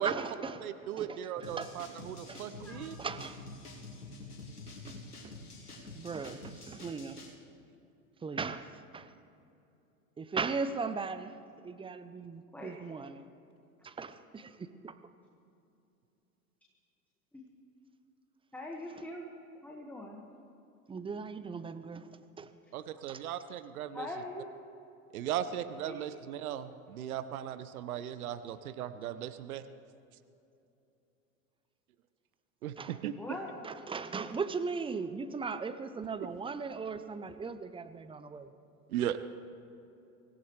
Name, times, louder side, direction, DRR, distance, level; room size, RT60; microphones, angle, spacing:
voice 1, 0.0-0.7 1.0-1.7 2.3-2.4 3.0-3.4 4.9-5.0 5.2-5.3 5.9-7.2 8.2-9.1 10.2-11.3 11.6-13.2 13.8-15.0 20.9-22.5 23.1-23.2 32.8-33.0 33.6-38.5, right 5 dB, 10° right, 11 dB, 0.7 m, -38 dB
voice 2, 0.6-3.0 22.7-24.1 25.1-29.6 32.6-33.1 38.9-39.3, right 10 dB, 70° right, 12 dB, 0.9 m, -37 dB
sound 1, 1.4-7.3, left 2 dB, 90° left, 2.3 m, -47 dB
voice 3, 18.5-19.3 19.6-20.2 23.9-24.5 25.8-26.2 33.1-33.6, left 1 dB, 5° left, -1 dB, 1.8 m, -42 dB
25.0 x 16.5 x 3.3 m, 2.7 s
hypercardioid pair, 85°, 44 cm